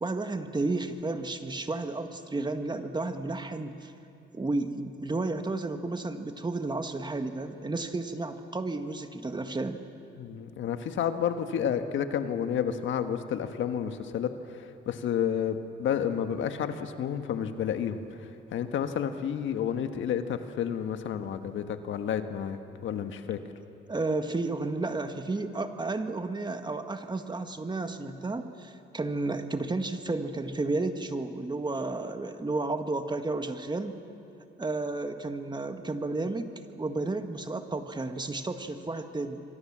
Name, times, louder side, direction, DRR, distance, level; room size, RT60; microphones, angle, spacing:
voice 1, 0.0-3.9 4.3-9.8 23.9-34.0 34.6-39.4, right 2 dB, 20° right, 7 dB, 1.7 m, -32 dB
voice 2, 10.2-23.4, left 8 dB, 75° left, 8 dB, 1.5 m, -31 dB
27.0 x 23.5 x 7.5 m, 2.7 s
cardioid pair, 90°, 20 cm